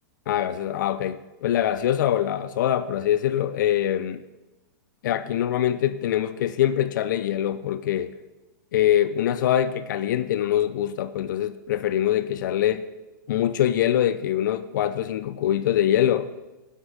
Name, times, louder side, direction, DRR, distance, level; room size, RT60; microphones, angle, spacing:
voice 1, 0.3-4.2 5.0-8.2 8.7-12.9 13.3-16.3, left 11 dB, 70° left, 12 dB, 0.5 m, -24 dB
9.9 x 5.4 x 6.3 m, 1.1 s
hypercardioid pair, 140°, 11 cm